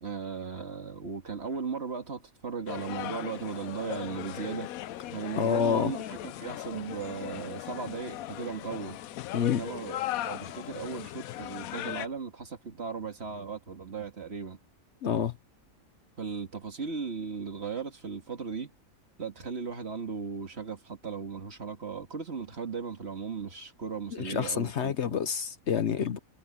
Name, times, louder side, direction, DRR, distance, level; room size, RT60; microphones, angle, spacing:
voice 1, 0.0-4.7 5.1-9.0 9.6-10.0 10.3-14.6 16.2-18.7 19.2-25.2, right 5 dB, 50° right, 2.2 m, -37 dB
sound 1, 2.7-12.1, left 13 dB, 85° left, 1.1 m, -38 dB
voice 2, 5.4-5.9 9.3-9.6 15.0-15.3 24.1-26.2, left 7 dB, 60° left, 1.0 m, -28 dB
omnidirectional pair, 1.4 m